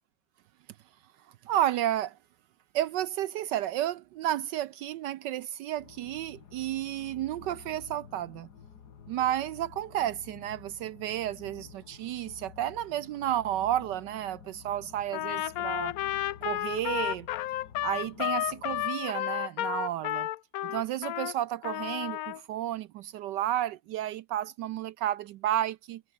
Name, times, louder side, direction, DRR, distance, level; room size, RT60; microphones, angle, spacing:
voice 1, 1.5-2.1 2.7-8.5 9.1-15.9 16.4-17.3 17.8-20.3 20.6-26.0, right 12 dB, 75° right, 1.1 m, -32 dB
sound 1, 5.8-18.9, left 7 dB, 55° left, 2.1 m, -51 dB
Trumpet, 15.1-21.3 21.6-22.4, left 14 dB, 90° left, 0.7 m, -32 dB
omnidirectional pair, 2.2 m